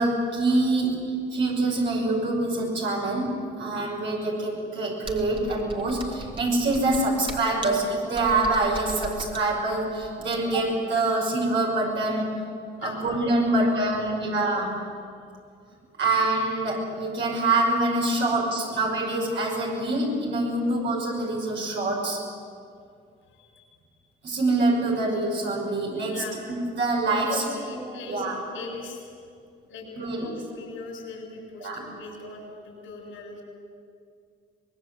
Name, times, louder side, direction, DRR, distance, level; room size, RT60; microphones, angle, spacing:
voice 1, 0.0-12.3 12.8-14.8 16.0-22.2 24.2-27.4 27.9-28.4 30.0-30.4 31.6-31.8, right 2 dB, 70° right, -2 dB, 6.0 m, -25 dB
Computer keyboard, 5.0-10.7, right 1 dB, 25° right, 2.5 m, -39 dB
voice 2, 13.4-14.4 23.3-23.6 26.1-26.4 27.1-29.1 29.7-33.4, left 3 dB, 90° left, 0 dB, 7.2 m, -39 dB
24.0 x 21.0 x 7.9 m, 2.4 s
cardioid pair, 90°, 20 cm